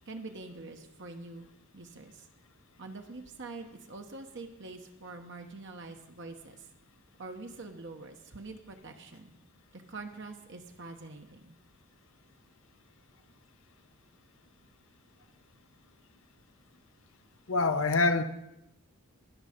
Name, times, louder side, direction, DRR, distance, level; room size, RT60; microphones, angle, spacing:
voice 1, 0.1-1.5 1.7-2.3 2.8-6.7 7.2-9.3 9.7-11.6, right 3 dB, 55° right, 1.0 m, -45 dB
voice 2, 17.5-18.2, left 3 dB, 60° left, 0.7 m, -25 dB
20.0 x 6.6 x 5.1 m
head